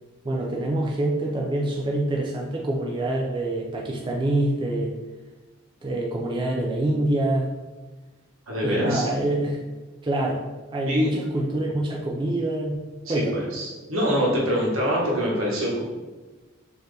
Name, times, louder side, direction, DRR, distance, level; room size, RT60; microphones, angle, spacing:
voice 1, 0.2-4.9 5.8-7.5 8.6-9.6 10.0-10.4 10.7-12.8 13.1-13.4, right 1 dB, 25° right, -2 dB, 0.3 m, -26 dB
voice 2, 8.5-9.1 10.9-11.2 13.0-15.8, equal, 80° right, -4 dB, 1.2 m, -24 dB
4.1 x 2.8 x 3.2 m, 1.2 s
head